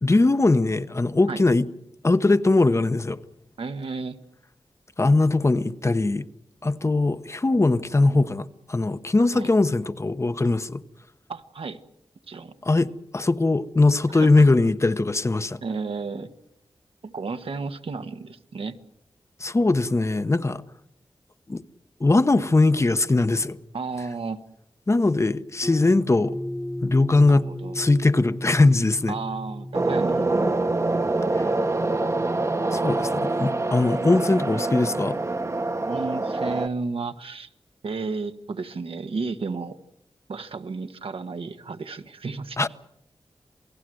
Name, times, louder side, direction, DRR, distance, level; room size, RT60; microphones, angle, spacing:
voice 1, 0.0-1.7 2.0-3.2 5.0-6.3 6.6-10.8 12.6-15.6 19.4-20.6 21.5-21.6 22.0-23.6 24.9-26.4 26.8-27.5 27.7-29.2 32.7-35.2 42.6-42.7, left 2 dB, 30° left, 0.9 m, -21 dB
voice 2, 3.6-4.2 9.3-9.5 11.3-11.8 12.3-12.5 14.1-14.3 15.6-16.3 17.0-18.8 23.7-24.4 27.3-27.7 29.1-30.4 35.9-37.5 37.8-39.8 40.3-42.6, right 4 dB, 80° right, 1.4 m, -32 dB
sound 1, 25.6-30.8, left 1 dB, 5° left, 1.1 m, -35 dB
sound 2, 29.7-36.7, right 2 dB, 30° right, 1.0 m, -25 dB
28.0 x 18.5 x 7.8 m
wide cardioid pair, 100°, 9 cm